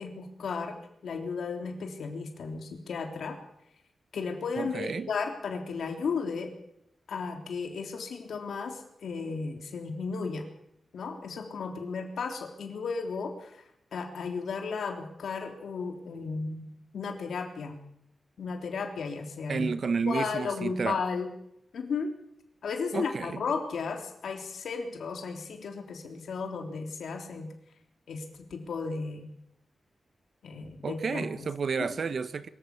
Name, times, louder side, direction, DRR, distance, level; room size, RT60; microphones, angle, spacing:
voice 1, 0.0-3.4 4.1-6.5 7.1-10.5 10.9-13.6 13.9-16.7 16.9-17.8 18.4-19.7 20.1-21.3 21.7-22.1 22.6-27.5 28.1-29.3 30.4-31.5, left 5 dB, 85° left, 3.5 m, -34 dB
voice 2, 4.6-5.1 19.5-21.0 22.9-23.4 30.8-32.5, right 5 dB, 55° right, 1.0 m, -31 dB
23.5 x 14.5 x 8.5 m
wide cardioid pair, 145°, 0 cm